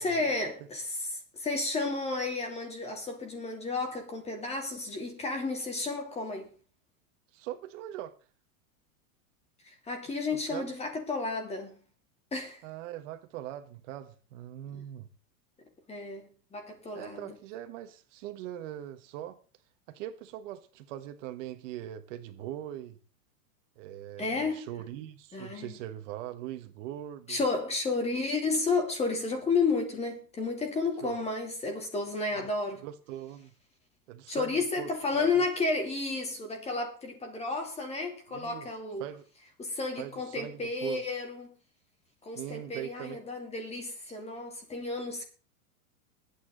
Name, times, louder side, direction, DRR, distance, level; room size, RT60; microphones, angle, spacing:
voice 1, 0.0-6.5 9.6-11.7 12.3-12.6 14.7-14.8 15.9-17.4 24.2-24.7 25.3-25.8 27.3-32.8 34.3-39.1 39.6-41.5 42.2-45.2, left 3 dB, 15° left, 3.1 m, -32 dB
voice 2, 7.3-8.1 10.5-10.7 12.6-15.1 16.9-19.4 19.9-23.0 23.8-27.4 31.0-31.2 32.4-32.5 32.8-33.5 34.1-35.3 38.3-38.7 39.0-39.2 40.0-41.0 42.3-43.2, right 12 dB, 55° right, 1.5 m, -41 dB
21.5 x 8.7 x 3.9 m
supercardioid pair, 155°, 45 cm